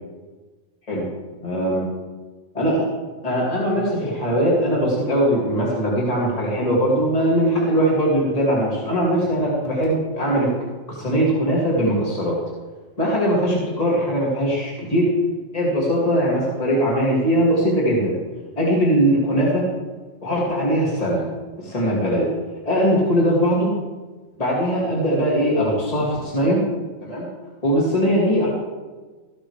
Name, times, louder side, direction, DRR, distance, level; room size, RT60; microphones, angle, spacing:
voice 1, 1.4-1.8 2.6-2.9 3.2-10.5 10.9-12.4 13.0-15.1 15.5-18.1 18.6-19.6 20.2-21.3 21.6-22.3 22.6-23.7 24.4-26.6 27.0-27.2 27.6-28.5, equal, 30° left, -5 dB, 2.6 m, -20 dB
14.5 x 12.0 x 3.3 m, 1.3 s
omnidirectional pair, 1.3 m